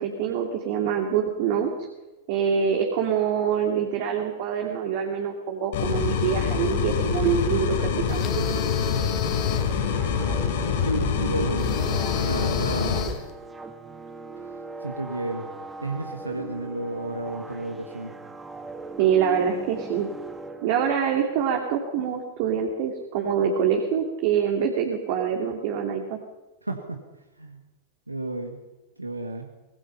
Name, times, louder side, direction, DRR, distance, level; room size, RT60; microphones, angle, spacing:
voice 1, 0.0-1.9 2.3-8.3 19.0-20.1 20.6-26.2, right 7 dB, 50° right, 3 dB, 2.6 m, -25 dB
sound 1, 5.7-13.0, left 6 dB, 55° left, 6.3 m, -25 dB
sound 2, 7.1-21.2, right 3 dB, 10° right, 2.1 m, -41 dB
sound 3, 8.1-9.8 11.6-13.3, left 10 dB, 35° left, 1.8 m, -34 dB
voice 2, 10.8-11.7 12.2-13.2 14.8-15.5 15.8-18.1 26.6-27.0 27.4-27.6 28.1-28.6 29.0-29.5, right 2 dB, 85° right, 4 dB, 1.8 m, -32 dB
24.0 x 20.5 x 5.7 m, 1.1 s
figure-of-eight pair, 90°, 0 cm